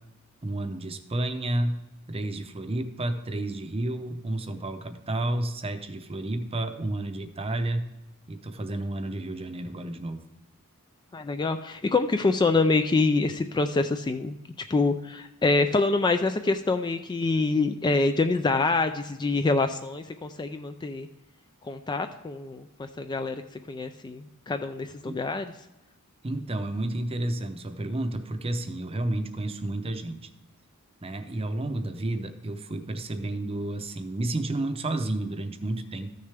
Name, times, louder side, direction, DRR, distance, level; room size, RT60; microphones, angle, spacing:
voice 1, 0.4-1.8 2.1-7.9 8.3-10.2 25.0-25.2 26.2-30.2 31.0-36.1, right 1 dB, 25° right, 8 dB, 0.7 m, -31 dB
voice 2, 11.1-14.4 14.7-21.1 21.6-23.4 23.7-25.5, left 3 dB, 20° left, 8 dB, 0.3 m, -26 dB
13.5 x 6.5 x 3.4 m, 0.98 s
head